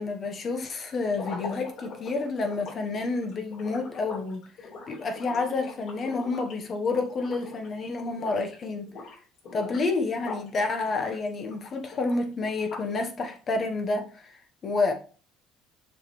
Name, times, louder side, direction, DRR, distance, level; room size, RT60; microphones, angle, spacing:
voice 1, 0.0-8.9 9.5-14.9, left 3 dB, 30° left, 1.0 m, -29 dB
sound 1, 1.1-7.7 8.0-8.5 8.8-10.5 10.8-13.0, left 4 dB, 55° left, 3.5 m, -42 dB
7.1 x 5.0 x 3.1 m
cardioid pair, 145°, 0 cm